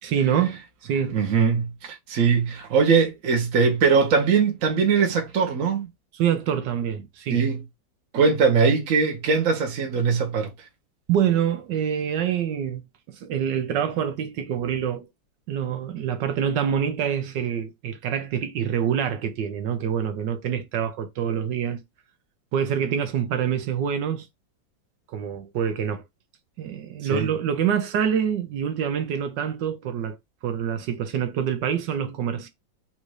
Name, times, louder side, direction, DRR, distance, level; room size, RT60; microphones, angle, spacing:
voice 1, 0.0-1.2 6.1-7.5 11.1-12.8 13.1-15.1 15.5-21.8 22.5-24.3 25.1-26.0 26.6-30.2 30.4-32.5, right 8 dB, 70° right, 1.2 m, -26 dB
voice 2, 1.1-5.9 7.3-7.6 8.1-10.5 27.1-27.3, right 5 dB, 50° right, 1.2 m, -21 dB
4.1 x 2.6 x 4.6 m
omnidirectional pair, 2.1 m